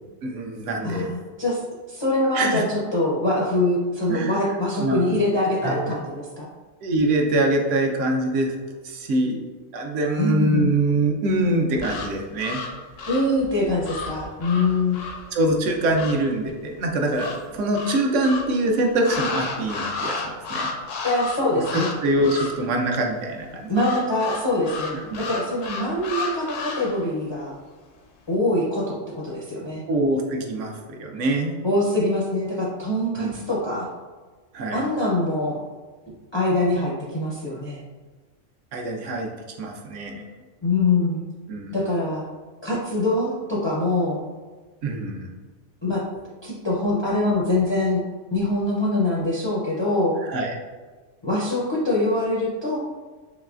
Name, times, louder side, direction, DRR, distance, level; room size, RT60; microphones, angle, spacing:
voice 1, 0.2-1.1 2.3-2.6 4.1-4.5 4.8-5.1 5.6-6.0 6.8-8.5 8.8-9.4 9.7-12.6 15.3-20.7 21.7-23.7 25.1-25.2 29.9-31.6 33.2-33.3 34.5-34.8 38.7-39.3 39.6-40.2 41.5-41.8 44.8-45.3 50.2-50.6, right 1 dB, 75° right, 2 dB, 0.9 m, -24 dB
voice 2, 0.8-1.6 1.9-6.5 10.2-10.7 13.1-15.0 21.0-21.9 23.7-27.5 28.3-29.8 31.6-33.9 34.7-35.6 36.3-37.8 40.6-41.2 41.7-42.3 42.6-44.2 45.8-46.0 46.4-48.0 48.3-50.2 51.2-52.8, left 2 dB, 40° left, -5 dB, 0.4 m, -24 dB
sound 1, 11.7-16.3 17.2-18.6 19.0-22.0 22.2-22.7 23.7-27.0, left 3 dB, 75° left, 0.9 m, -32 dB
4.0 x 3.0 x 2.4 m, 1.4 s
omnidirectional pair, 1.3 m